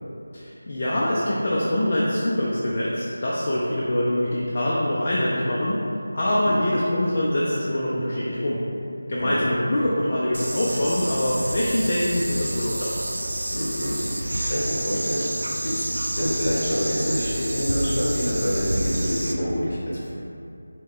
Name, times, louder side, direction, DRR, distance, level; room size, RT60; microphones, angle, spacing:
voice 1, 0.3-5.8 6.1-8.6 9.1-13.0, left 1 dB, 35° left, -6 dB, 0.4 m, -24 dB
sound 1, 10.3-19.3, right 1 dB, 85° right, 0.5 m, -29 dB
voice 2, 13.5-15.2 15.6-15.9 16.1-20.1, equal, 50° left, -7 dB, 1.4 m, -27 dB
5.0 x 2.1 x 3.6 m, 2.7 s
figure-of-eight pair, 175°, 0 cm